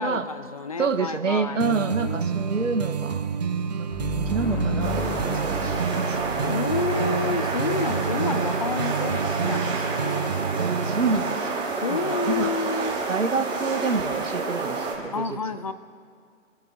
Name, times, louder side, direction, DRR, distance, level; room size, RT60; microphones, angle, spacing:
voice 1, 0.0-2.2 6.4-10.4 11.8-12.9 15.1-15.7, left 4 dB, 30° left, 14 dB, 0.5 m, -30 dB
voice 2, 0.8-3.2 3.7-6.8 10.3-10.5 10.8-11.5 11.9-12.6 13.1-15.4, right 4 dB, 70° right, 7 dB, 1.6 m, -28 dB
sound 1, 1.6-11.2, right 6 dB, 35° right, 0.6 m, -29 dB
sound 2, 3.9-7.6, left 2 dB, 5° left, 1.3 m, -33 dB
sound 3, 4.8-14.9, right 4 dB, 10° right, 2.7 m, -29 dB
27.5 x 9.9 x 3.9 m, 2.3 s
figure-of-eight pair, 140°, 40 cm